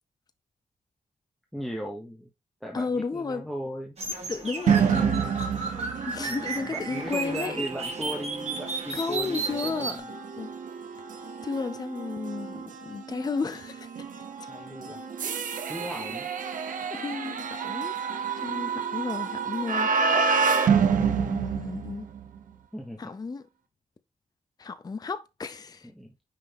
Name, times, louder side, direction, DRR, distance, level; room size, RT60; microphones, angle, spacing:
voice 1, 1.5-2.3 2.6-4.0 6.3-10.1 14.5-15.0 15.7-16.3 22.7-23.1 25.9-26.1, equal, ahead, 1.1 m, -37 dB
voice 2, 2.7-3.5 4.3-5.4 6.1-7.6 8.9-10.0 10.4-10.5 11.4-13.9 15.9-16.1 16.9-18.0 18.4-19.9 20.8-22.1 23.0-23.4 24.6-25.9, left 4 dB, 30° left, 0.5 m, -33 dB
sound 1, 4.0-10.0, right 4 dB, 50° right, 2.0 m, -34 dB
sound 2, 4.7-22.4, right 6 dB, 70° right, 0.8 m, -29 dB
5.7 x 5.1 x 3.5 m
wide cardioid pair, 115°, 14 cm